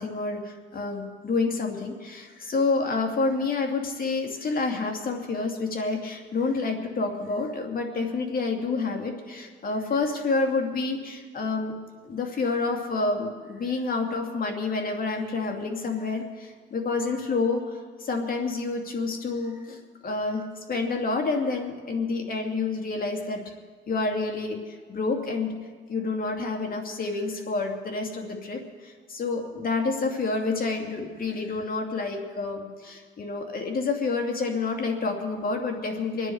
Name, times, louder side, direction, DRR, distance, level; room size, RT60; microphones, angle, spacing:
voice 1, 0.0-11.7 12.0-20.4 20.7-23.4 23.9-25.5 25.9-36.3, left 3 dB, 45° left, 3 dB, 2.7 m, -28 dB
24.5 x 9.9 x 4.7 m, 1.5 s
cardioid pair, 90°, 20 cm